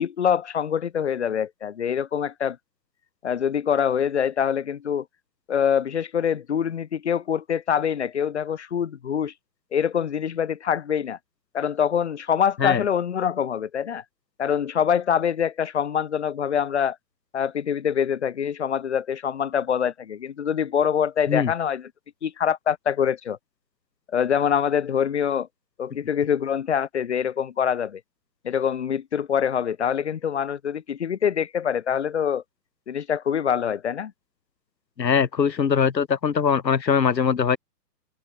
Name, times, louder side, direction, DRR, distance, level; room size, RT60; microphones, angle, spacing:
voice 1, 0.0-2.6 3.2-5.0 5.5-9.3 9.7-11.2 11.5-14.0 14.4-17.0 17.3-21.9 22.2-23.4 24.1-25.5 25.8-28.0 28.4-32.4 32.9-34.1, left 8 dB, 40° left, 1.8 m, -24 dB
voice 2, 35.0-37.6, left 6 dB, 80° left, 3.0 m, -21 dB
hypercardioid pair, 175°, 50 cm